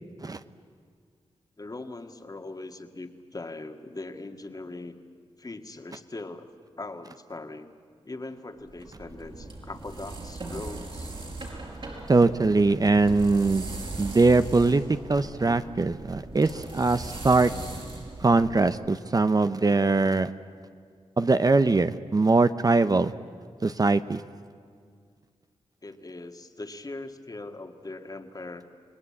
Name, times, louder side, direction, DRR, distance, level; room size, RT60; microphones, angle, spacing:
voice 1, 1.6-4.9 5.4-7.7 8.0-11.1 25.8-28.6, left 2 dB, 35° left, 6 dB, 1.9 m, -40 dB
sound 1, 8.7-19.0, right 2 dB, 55° right, 5.1 m, -39 dB
voice 2, 12.1-13.7 14.0-17.5 18.2-20.3 21.2-23.1 23.6-24.2, right 3 dB, 35° right, 11 dB, 0.8 m, -22 dB
30.0 x 20.0 x 8.6 m, 2.1 s
cardioid pair, 65°, 11 cm